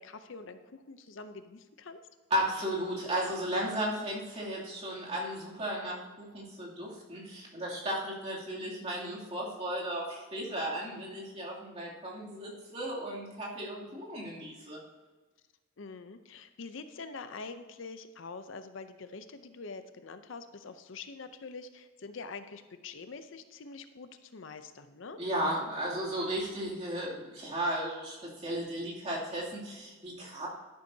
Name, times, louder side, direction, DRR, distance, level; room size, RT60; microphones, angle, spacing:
voice 1, 0.0-2.0 15.8-25.2, left 4 dB, 65° left, 10 dB, 0.6 m, -45 dB
voice 2, 2.3-14.8 25.2-30.5, right 1 dB, 30° right, -5 dB, 2.7 m, -35 dB
11.5 x 11.0 x 2.8 m, 1.3 s
head